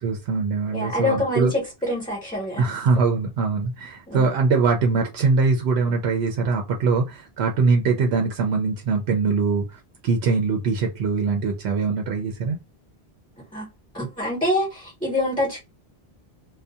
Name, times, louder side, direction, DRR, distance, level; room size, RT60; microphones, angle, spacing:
voice 1, 0.0-1.5 2.6-12.6, right 4 dB, 85° right, 0.8 m, -22 dB
voice 2, 0.7-2.7 4.1-4.3 13.5-13.7 13.9-15.6, left 1 dB, 5° left, 1.1 m, -25 dB
2.6 x 2.2 x 2.3 m
omnidirectional pair, 1.1 m